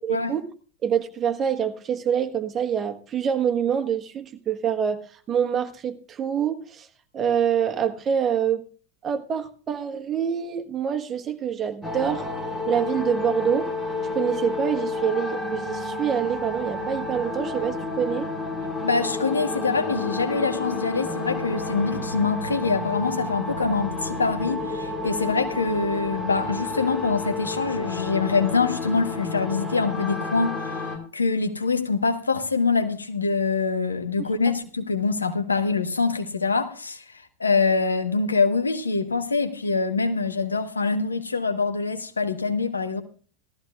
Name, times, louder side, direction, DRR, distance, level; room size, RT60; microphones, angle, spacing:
voice 1, 0.0-0.5 0.8-5.0 5.3-6.9 7.1-8.6 9.0-12.3 12.7-13.7 14.1-18.3, right 8 dB, 30° right, 1.3 m, -26 dB
sound 1, 11.8-31.0, left 2 dB, 15° left, 3.5 m, -30 dB
voice 2, 18.8-43.0, left 4 dB, 90° left, 1.2 m, -24 dB
17.5 x 14.0 x 2.4 m
hypercardioid pair, 85°, 0 cm